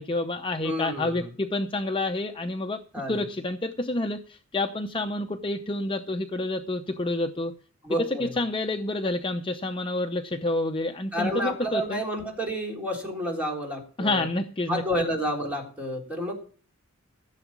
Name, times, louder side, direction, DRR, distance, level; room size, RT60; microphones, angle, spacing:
voice 1, 0.0-2.8 3.1-7.5 8.0-12.0 14.0-14.8, left 2 dB, 25° left, 5 dB, 0.6 m, -28 dB
voice 2, 0.6-1.3 2.9-3.2 7.8-8.4 11.1-14.3 14.7-16.3, equal, 5° right, -1 dB, 3.6 m, -30 dB
15.0 x 7.0 x 7.3 m, 0.42 s
head